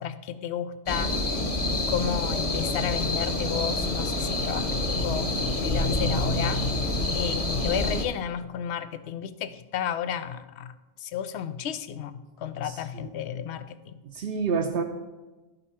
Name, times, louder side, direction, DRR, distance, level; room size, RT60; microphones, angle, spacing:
voice 1, 0.0-1.4 1.7-4.7 5.0-5.3 5.6-6.7 7.1-10.7 11.0-14.0, left 9 dB, 80° left, 12 dB, 0.8 m, -32 dB
sound 1, 0.9-8.1, left 2 dB, 35° left, 1.0 m, -27 dB
voice 2, 12.6-13.1 14.1-14.8, right 5 dB, 65° right, 3 dB, 0.8 m, -29 dB
12.0 x 5.4 x 4.2 m, 1.2 s
omnidirectional pair, 1.1 m